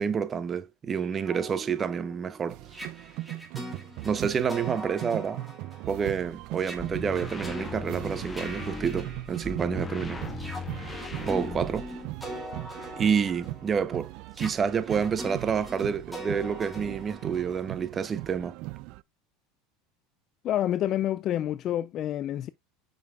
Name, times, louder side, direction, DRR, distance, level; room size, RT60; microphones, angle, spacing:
voice 1, 0.0-2.6 4.0-5.5 5.9-10.2 11.2-11.9 13.0-14.1 14.4-18.6, right 6 dB, 25° right, 0.8 m, -28 dB
sound 1, 1.0-9.8 10.3-18.1, equal, ahead, 2.5 m, -43 dB
sound 2, 2.5-19.0, right 18 dB, 60° right, 0.4 m, -39 dB
sound 3, 6.6-12.1, left 3 dB, 15° left, 1.5 m, -38 dB
voice 2, 20.4-22.5, left 12 dB, 40° left, 0.4 m, -28 dB
7.6 x 5.8 x 2.3 m
supercardioid pair, 120°, 0 cm